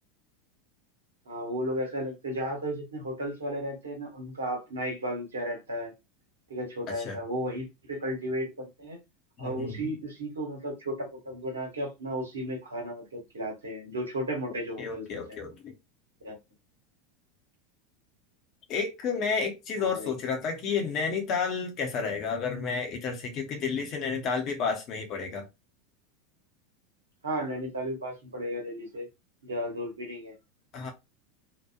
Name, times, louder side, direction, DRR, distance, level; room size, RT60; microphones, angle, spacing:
voice 1, 1.3-5.9 6.5-9.0 9.4-15.4 16.2-16.4 19.8-20.1 27.2-29.1 29.4-30.3, equal, 80° right, 1.1 m, -34 dB
voice 2, 6.9-7.2 9.4-9.9 14.5-15.7 18.7-25.5 30.7-30.9, left 5 dB, 45° left, 0.9 m, -31 dB
2.9 x 2.2 x 2.3 m
figure-of-eight pair, 80°, 0 cm